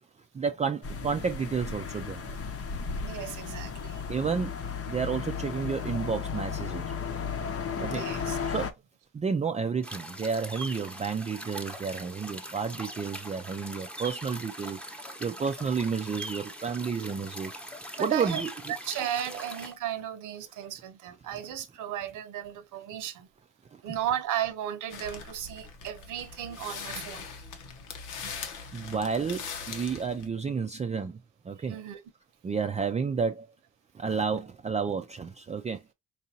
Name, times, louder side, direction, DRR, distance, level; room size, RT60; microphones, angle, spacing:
voice 1, 0.3-2.4 4.1-4.5 4.9-6.9 7.8-8.7 9.1-17.5 18.0-18.7 23.7-24.0 28.7-31.2 31.4-31.8 32.4-33.5 33.9-35.8, right 5 dB, 25° right, 0.4 m, -31 dB
sound 1, 0.8-8.7, left 6 dB, 50° left, 0.8 m, -34 dB
voice 2, 3.0-4.0 7.8-8.4 18.0-18.4 18.7-23.3 23.8-27.2 28.2-28.3 31.7-32.0, right 10 dB, 85° right, 0.9 m, -35 dB
sound 2, 9.8-19.7, right 1 dB, 5° left, 0.9 m, -41 dB
sound 3, 24.9-30.3, left 6 dB, 85° left, 1.1 m, -41 dB
4.7 x 2.6 x 2.8 m
cardioid pair, 90°, 30 cm